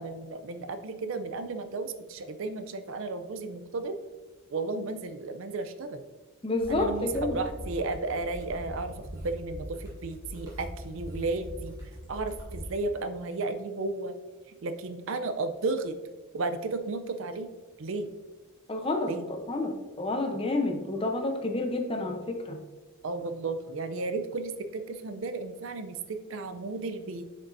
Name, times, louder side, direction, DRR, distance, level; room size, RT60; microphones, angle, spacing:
voice 1, 0.0-4.0 4.5-6.0 6.7-11.7 12.1-14.2 14.6-16.0 16.3-17.5 17.8-18.1 19.1-19.3 23.0-27.3, right 3 dB, 60° right, 9 dB, 0.5 m, -33 dB
voice 2, 6.4-7.4 18.7-19.7 20.0-22.6, left 2 dB, 25° left, 4 dB, 0.7 m, -29 dB
sound 1, 6.6-12.7, equal, 15° right, 1.9 m, -41 dB
7.1 x 5.2 x 2.6 m, 1.2 s
head